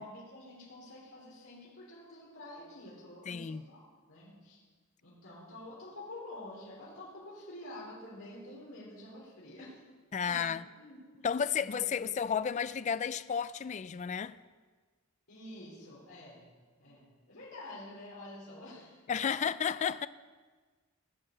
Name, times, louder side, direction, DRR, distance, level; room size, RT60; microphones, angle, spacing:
voice 1, 0.0-4.6 5.0-9.8 10.2-11.3 11.6-12.1 15.3-16.5 16.8-19.0 19.3-19.4, left 1 dB, 70° left, 3.9 m, -48 dB
voice 2, 3.3-3.6 10.1-10.6 11.2-14.4 19.1-20.1, left 7 dB, 35° left, 0.3 m, -32 dB
18.0 x 7.7 x 6.5 m
head